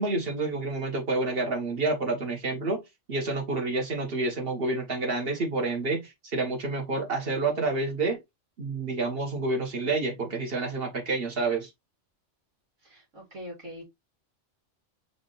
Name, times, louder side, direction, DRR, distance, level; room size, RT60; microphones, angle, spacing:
voice 1, 0.0-2.8 3.1-8.2 8.6-11.7, right 3 dB, 50° right, 1.6 m, -29 dB
voice 2, 12.8-13.8, left 1 dB, 85° right, 2.7 m, -42 dB
5.1 x 3.3 x 3.1 m
omnidirectional pair, 1.2 m